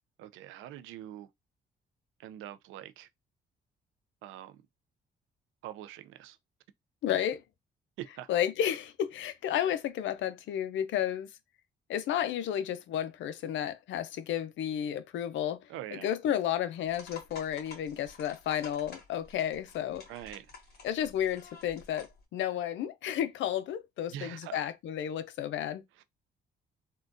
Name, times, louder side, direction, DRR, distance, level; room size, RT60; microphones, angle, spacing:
voice 1, 0.2-1.3 2.2-3.1 4.2-4.6 5.6-6.4 8.0-8.3 15.7-16.2 20.1-20.9 24.1-24.7 26.0-26.1, right 12 dB, 90° right, 0.4 m, -44 dB
voice 2, 7.0-7.4 8.3-11.3 11.9-15.6 16.0-20.0 20.8-25.8, left 10 dB, 75° left, 0.5 m, -32 dB
sound 1, 16.9-22.2, left 4 dB, 55° left, 1.3 m, -51 dB
3.7 x 2.2 x 2.5 m
cardioid pair, 90°, 20 cm